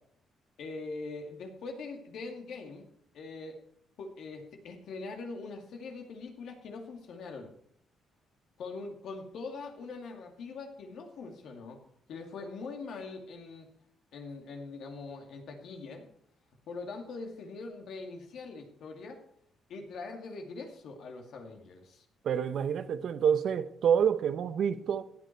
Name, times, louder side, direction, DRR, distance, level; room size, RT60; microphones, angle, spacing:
voice 1, 0.6-2.9 3.1-3.6 4.0-7.5 8.6-11.8 12.1-13.7 14.1-16.1 16.7-19.2 19.7-22.0, left 3 dB, 75° left, 2.4 m, -42 dB
voice 2, 22.2-25.0, right 8 dB, 65° right, 0.9 m, -27 dB
15.5 x 9.2 x 4.6 m
cardioid pair, 90°, 0 cm